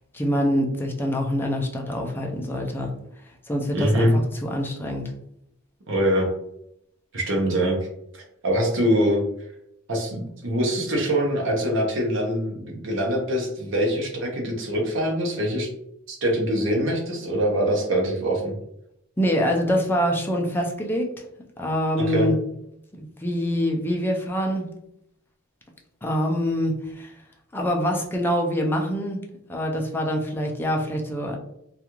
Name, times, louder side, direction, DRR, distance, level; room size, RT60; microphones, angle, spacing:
voice 1, 0.1-2.9 3.5-5.1 19.2-21.1 21.6-22.4 23.0-24.7 26.0-27.1 27.5-29.2 29.5-31.4, equal, 10° left, 1 dB, 0.4 m, -25 dB
voice 2, 3.7-4.1 5.9-6.3 7.1-7.8 8.1-9.2 9.9-15.7 16.1-18.5 22.0-22.3, equal, 65° right, 0 dB, 0.7 m, -23 dB
2.4 x 2.3 x 2.9 m, 0.79 s
head